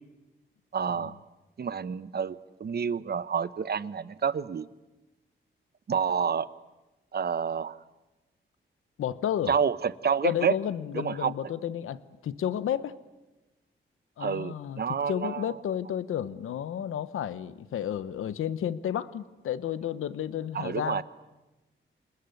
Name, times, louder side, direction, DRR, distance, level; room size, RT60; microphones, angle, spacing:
voice 1, 0.7-1.2 1.6-4.7 5.9-6.5 7.1-7.8 9.5-10.5 10.9-11.3 14.2-15.6 20.5-21.0, right 6 dB, 50° right, 16 dB, 1.0 m, -29 dB
voice 2, 9.0-9.5 10.2-13.0 14.2-14.8 15.1-21.0, left 10 dB, 90° left, 15 dB, 1.0 m, -32 dB
27.0 x 20.5 x 9.3 m, 1.1 s
cardioid pair, 80°, 21 cm